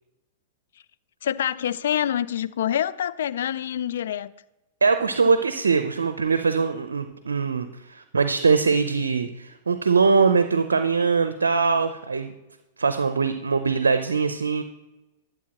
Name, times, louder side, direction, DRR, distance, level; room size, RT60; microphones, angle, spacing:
voice 1, 1.2-4.3, left 10 dB, 70° left, 0.3 m, -26 dB
voice 2, 4.8-12.3 12.8-14.6, right 4 dB, 85° right, 0.5 m, -22 dB
12.0 x 8.0 x 3.0 m
hypercardioid pair, 110°, 0 cm